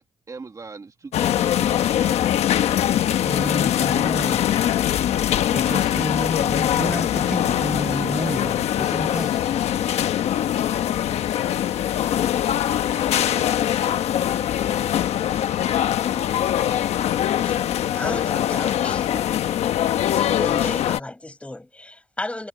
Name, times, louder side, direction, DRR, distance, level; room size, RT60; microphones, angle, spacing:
voice 1, 0.0-2.4, right 4 dB, 30° right, 1.9 m, -40 dB
sound 1, 1.1-21.0, left 11 dB, 75° left, 1.1 m, -22 dB
voice 2, 3.2-4.5 5.5-9.4, right 1 dB, 5° right, 1.0 m, -30 dB
voice 3, 17.9-19.3 20.3-22.5, left 1 dB, 10° left, 5.5 m, -33 dB
cardioid pair, 95°, 11 cm